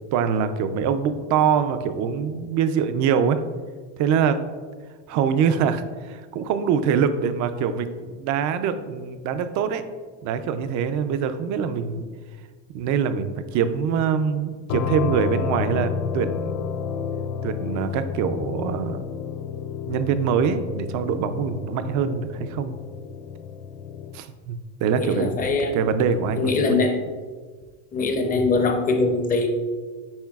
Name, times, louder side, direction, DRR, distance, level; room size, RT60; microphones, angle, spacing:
voice 1, 0.1-3.4 4.0-4.4 5.1-9.8 10.2-12.0 12.7-16.7 17.4-19.0 19.9-22.8 24.1-25.3 25.7-26.8, right 7 dB, 45° right, 10 dB, 0.4 m, -24 dB
sound 1, 14.7-24.2, left 7 dB, 70° left, 0.5 m, -31 dB
voice 2, 24.9-25.8 26.4-27.0 27.9-29.5, left 3 dB, 20° left, 4 dB, 0.5 m, -22 dB
8.6 x 5.6 x 2.3 m, 1.5 s
cardioid pair, 160°, 43 cm